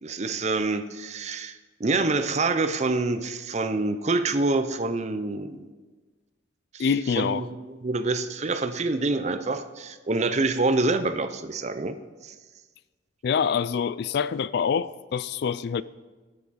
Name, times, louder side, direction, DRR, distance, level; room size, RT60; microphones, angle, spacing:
voice 1, 0.0-5.7 6.7-6.9 7.2-12.0 12.2-12.3, right 3 dB, 35° right, 10 dB, 0.6 m, -26 dB
voice 2, 6.8-7.4 13.2-15.8, left 6 dB, 55° left, 17 dB, 0.3 m, -25 dB
20.0 x 6.7 x 4.1 m, 1.3 s
head